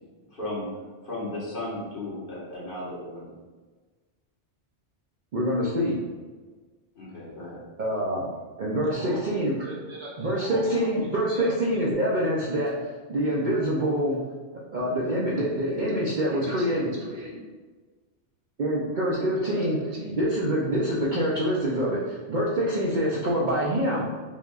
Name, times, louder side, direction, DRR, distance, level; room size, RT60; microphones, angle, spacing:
voice 1, 0.3-0.7 1.0-3.3 7.0-7.6, left 1 dB, 45° left, -9 dB, 1.7 m, -35 dB
voice 2, 5.3-6.0 7.8-8.3 8.6-9.7 10.2-14.2 14.7-16.9 18.6-19.8 20.1-24.1, equal, 50° right, -5 dB, 0.6 m, -26 dB
voice 3, 9.6-10.9 11.3-11.6 15.3-17.4 19.1-20.2, equal, 80° right, -3 dB, 1.3 m, -39 dB
5.1 x 3.4 x 2.4 m, 1.4 s
omnidirectional pair, 1.2 m